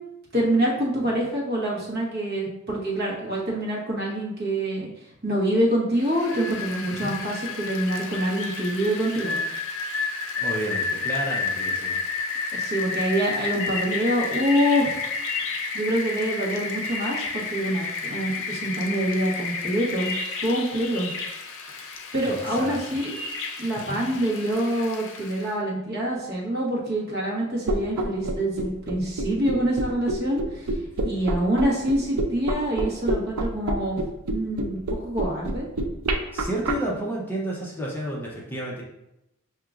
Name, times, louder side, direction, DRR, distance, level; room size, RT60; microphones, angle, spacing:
voice 1, 0.3-4.9 5.2-9.4 12.5-15.0 15.7-20.1 20.4-21.1 22.1-23.1 23.6-30.7 31.0-34.0 34.3-35.7, right 1 dB, 50° right, -4 dB, 1.2 m, -26 dB
Rain, 6.0-25.5, left 4 dB, 65° left, 0.5 m, -31 dB
voice 2, 10.4-12.0 22.2-22.8 23.8-24.0 36.3-38.8, right 1 dB, 10° left, -4 dB, 0.6 m, -31 dB
sound 1, 27.7-36.7, right 2 dB, 80° right, 0.5 m, -26 dB
6.2 x 2.8 x 2.4 m, 0.88 s
head